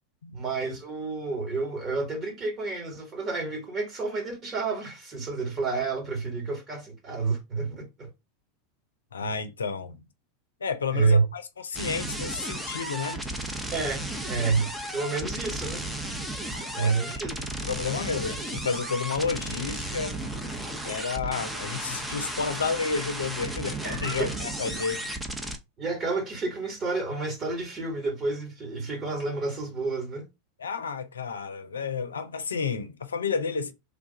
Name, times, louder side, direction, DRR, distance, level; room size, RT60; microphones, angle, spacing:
voice 1, 0.3-8.1 10.9-11.2 13.7-15.8 16.7-17.3 23.8-24.3 25.8-30.2, right 4 dB, 35° right, 1.6 m, -29 dB
voice 2, 9.1-10.0 10.6-13.2 16.8-17.3 17.6-20.2 20.8-25.0 30.6-33.7, left 5 dB, 90° left, 0.5 m, -31 dB
sound 1, 11.7-25.6, right 1 dB, 10° right, 0.8 m, -34 dB
3.4 x 2.4 x 3.9 m
hypercardioid pair, 95°, 0 cm